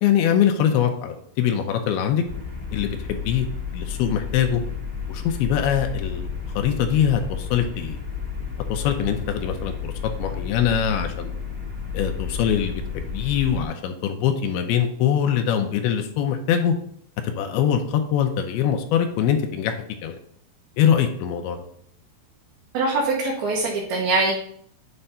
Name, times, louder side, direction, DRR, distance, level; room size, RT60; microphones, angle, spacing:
voice 1, 0.0-2.2 2.7-4.6 5.1-6.3 6.6-8.0 8.7-9.9 10.2-11.3 11.9-16.8 17.2-20.2 20.8-21.6, left 8 dB, 80° left, 5 dB, 2.2 m, -23 dB
sound 1, 2.3-13.7, left 6 dB, 50° right, 2.2 m, -31 dB
voice 2, 22.7-24.3, right 3 dB, 70° right, -2 dB, 2.6 m, -23 dB
8.1 x 3.3 x 5.4 m, 0.66 s
omnidirectional pair, 5.1 m